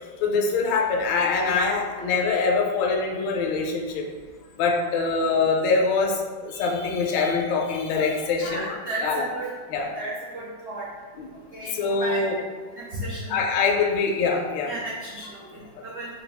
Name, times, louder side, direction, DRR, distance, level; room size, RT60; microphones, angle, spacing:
voice 1, 0.2-4.1 4.6-8.8 9.0-9.3 9.7-9.9 11.1-11.3 11.6-12.4 13.3-14.7, left 4 dB, 75° left, 0 dB, 1.2 m, -24 dB
voice 2, 8.4-9.5 9.9-10.8 11.5-11.7 12.0-12.2 12.8-13.3 14.7-16.1, right 1 dB, 65° right, -8 dB, 0.6 m, -33 dB
4.8 x 2.3 x 3.4 m, 1.5 s
omnidirectional pair, 2.2 m